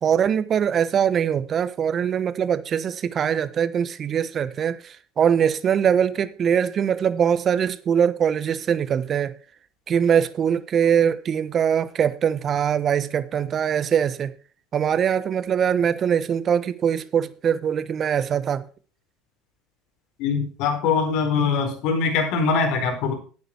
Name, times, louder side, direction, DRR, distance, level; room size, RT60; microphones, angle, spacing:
voice 1, 0.0-9.3 9.9-14.3 14.7-18.7, right 8 dB, 40° right, 1.1 m, -22 dB
voice 2, 20.2-23.1, left 5 dB, 65° left, 4.2 m, -22 dB
11.0 x 9.4 x 4.6 m
hypercardioid pair, 80°, 0 cm